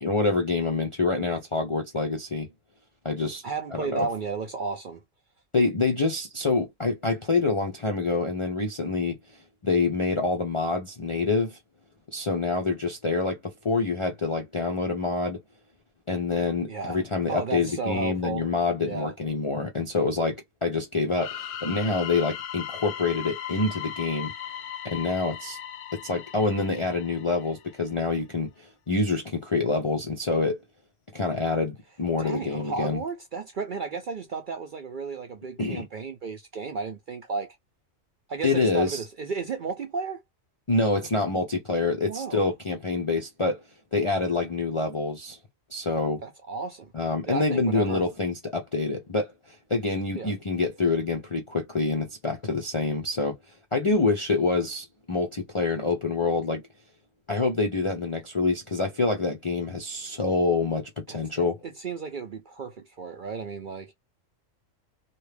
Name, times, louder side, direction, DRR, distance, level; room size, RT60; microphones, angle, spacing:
voice 1, 0.0-2.5 3.0-3.4 3.7-4.1 5.5-9.2 9.6-11.6 12.1-15.4 16.1-24.3 24.8-25.6 25.9-30.6 31.1-33.0 35.6-35.8 38.4-39.0 40.7-43.6 43.9-45.4 45.7-46.2 46.9-53.4 53.7-56.6 57.3-61.6, left 3 dB, 45° left, 0.4 m, -26 dB
voice 2, 3.4-5.0 16.7-17.0 17.3-18.4 18.8-19.1 32.2-37.6 38.3-40.2 42.1-42.5 46.2-46.9 47.3-48.0 50.2-50.3 61.1-61.5 61.8-63.9, right 4 dB, 55° right, 0.5 m, -33 dB
sound 1, 21.2-27.8, left 10 dB, 75° left, 0.9 m, -38 dB
2.8 x 2.3 x 3.3 m
omnidirectional pair, 1.3 m